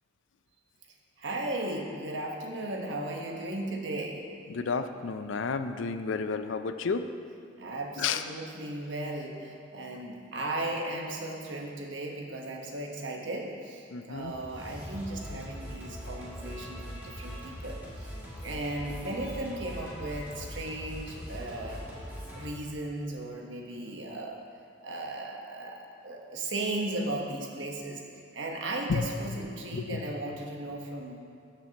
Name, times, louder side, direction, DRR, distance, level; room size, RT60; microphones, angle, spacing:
voice 1, 1.2-4.2 7.6-18.1 18.4-21.9 22.3-24.4 24.8-28.0 28.3-31.2, right 1 dB, 75° right, 1 dB, 1.2 m, -36 dB
voice 2, 4.5-7.1 8.0-8.2 13.9-14.3 28.9-29.0 29.7-30.0, left 5 dB, 80° left, 10 dB, 0.4 m, -31 dB
Singing, 14.1-22.4, equal, 10° right, 2.2 m, -41 dB
15.0 x 6.9 x 2.9 m, 2.4 s
head